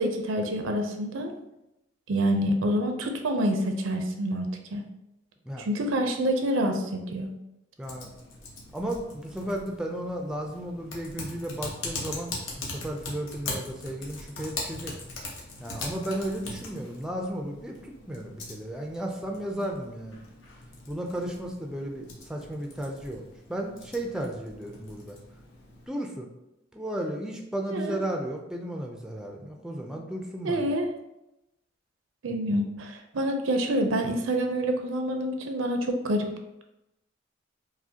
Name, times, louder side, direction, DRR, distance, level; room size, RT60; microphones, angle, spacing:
voice 1, 0.0-1.3 2.1-4.8 5.6-7.3 27.7-28.0 30.4-30.9 32.2-36.3, right 1 dB, 80° right, 4 dB, 0.5 m, -27 dB
Typing, 7.8-25.9, left 2 dB, 75° left, 0.9 m, -41 dB
voice 2, 7.8-8.1 8.7-14.9 15.6-20.2 20.9-23.2 23.5-25.2 25.9-26.3 26.7-30.7, right 1 dB, 5° right, 1 dB, 0.3 m, -34 dB
4.8 x 2.1 x 2.7 m, 0.90 s
head